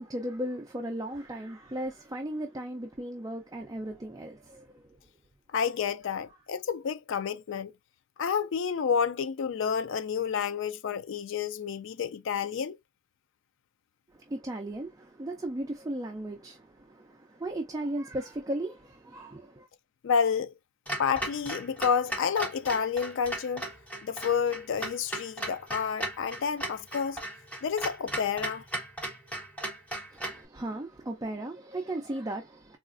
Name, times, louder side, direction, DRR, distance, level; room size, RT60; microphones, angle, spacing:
voice 1, 0.0-5.0 14.1-19.7 30.1-32.8, right 1 dB, 15° right, 0.4 m, -36 dB
voice 2, 5.5-7.7 8.2-12.8 20.0-20.5 21.0-23.7 24.0-27.2 27.6-28.6, left 6 dB, 60° left, 0.4 m, -29 dB
Clock, 20.9-30.4, right 1 dB, 5° left, 1.0 m, -37 dB
3.9 x 2.4 x 2.4 m
head